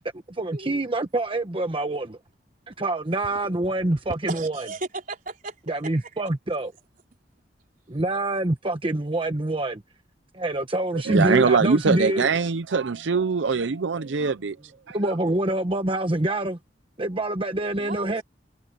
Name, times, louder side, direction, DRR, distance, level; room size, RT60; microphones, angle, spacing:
voice 1, 0.3-2.2 2.7-4.7 5.7-6.7 7.9-9.8 10.3-12.3 14.9-16.6 17.0-18.2, right 1 dB, 30° right, 1.2 m, -26 dB
voice 2, 3.8-5.6 5.8-6.2 17.7-18.2, right 3 dB, 50° right, 4.1 m, -36 dB
voice 3, 10.9-14.6 14.9-15.0, right 5 dB, 85° right, 0.6 m, -23 dB
head